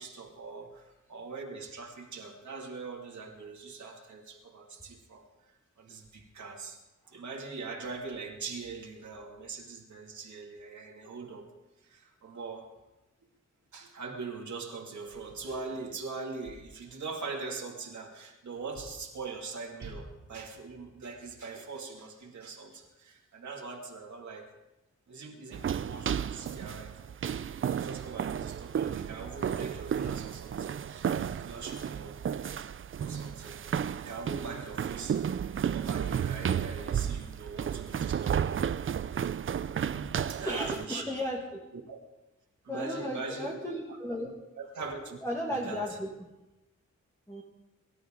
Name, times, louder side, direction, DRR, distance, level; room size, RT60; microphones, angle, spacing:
voice 1, 0.0-5.3 5.8-6.8 7.1-11.5 11.8-12.7 13.7-24.5 25.1-32.2 33.0-35.2 35.7-38.9 40.0-41.1 41.9-42.0 42.6-43.6 44.2-44.3 44.6-45.2 45.5-46.0, right 4 dB, 70° right, 0 dB, 2.5 m, -42 dB
sound 1, 25.5-40.9, right 8 dB, 45° right, 0.4 m, -33 dB
voice 2, 40.4-41.4 42.7-44.3 45.2-46.1 47.3-47.4, equal, 10° left, -3 dB, 2.0 m, -34 dB
23.5 x 12.5 x 3.8 m, 1.0 s
wide cardioid pair, 130°, 30 cm